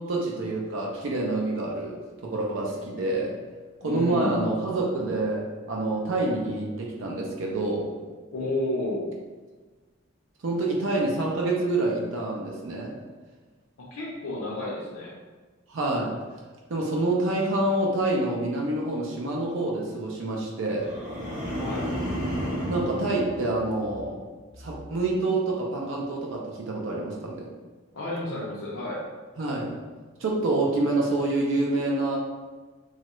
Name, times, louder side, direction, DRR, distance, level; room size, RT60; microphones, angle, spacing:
voice 1, 0.0-3.4 3.8-7.9 10.4-12.9 15.7-16.2 16.7-20.9 22.7-24.2 24.6-27.5 29.4-29.7 30.2-32.2, right 2 dB, 70° right, -2 dB, 0.5 m, -27 dB
voice 2, 3.8-4.4 8.3-9.1 13.8-15.1 21.5-21.9 27.9-29.0, left 1 dB, 85° left, -5 dB, 0.6 m, -31 dB
sound 1, 20.7-24.2 24.6-25.0, equal, 35° right, 0.8 m, -32 dB
3.1 x 2.3 x 2.9 m, 1.4 s
head